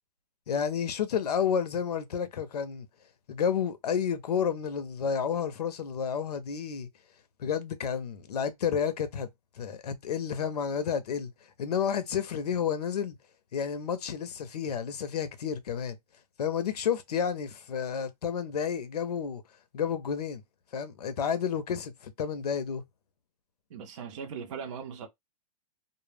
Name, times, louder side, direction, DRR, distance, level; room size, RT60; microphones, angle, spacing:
voice 1, 0.5-2.9 3.3-6.9 7.4-9.3 9.6-11.3 11.6-13.2 13.5-16.0 16.4-19.4 19.7-20.4 20.7-22.8, left 7 dB, 80° left, 0.6 m, -30 dB
voice 2, 23.7-25.1, right 6 dB, 55° right, 0.5 m, -39 dB
2.1 x 2.1 x 3.2 m
hypercardioid pair, 150°, 20 cm